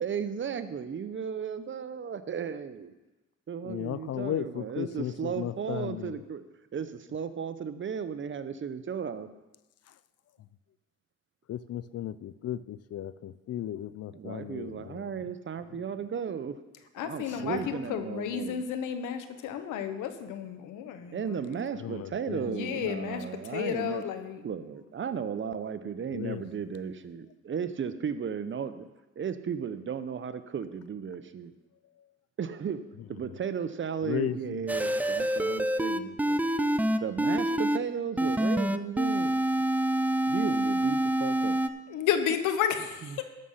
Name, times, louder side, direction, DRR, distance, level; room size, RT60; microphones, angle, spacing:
voice 1, 0.0-2.9 3.5-6.4 6.7-9.3 14.1-16.5 17.0-18.6 21.1-24.0 24.4-28.9 29.2-31.5 32.4-32.8 33.1-36.5 37.0-39.4 40.3-41.6 43.1-43.2, right 7 dB, 40° right, 11 dB, 0.8 m, -35 dB
voice 2, 3.6-6.2 9.9-10.0 11.5-15.3 15.6-16.0 17.3-17.7 19.4-19.5 21.8-22.9 26.1-26.5 32.0-32.1 33.2-33.4 34.0-34.6, left 11 dB, 55° left, 16 dB, 0.5 m, -36 dB
voice 3, 16.9-21.6 22.4-24.4 41.9-43.2, left 8 dB, 90° left, 9 dB, 1.1 m, -32 dB
sound 1, 34.7-37.8 38.2-41.7, right 1 dB, 5° right, 0.4 m, -26 dB
13.0 x 6.5 x 5.6 m, 1.1 s
cardioid pair, 90°, 30 cm